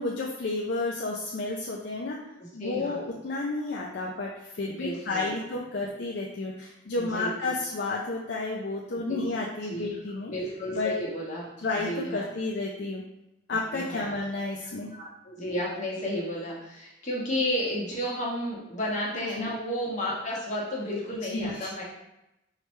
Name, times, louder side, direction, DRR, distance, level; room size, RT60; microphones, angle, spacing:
voice 1, 0.0-2.2 2.5-10.3 10.7-10.9 11.6-13.0 13.5-14.9 19.4-19.5 21.3-21.7, left 2 dB, 60° left, -2 dB, 0.4 m, -31 dB
voice 2, 2.4-3.0 4.7-5.4 7.0-7.3 9.1-9.2 9.6-9.9 10.3-11.5 11.7-12.3 13.7-14.1 14.9-21.8, equal, 40° left, -5 dB, 1.3 m, -32 dB
4.9 x 3.2 x 3.1 m, 0.90 s
head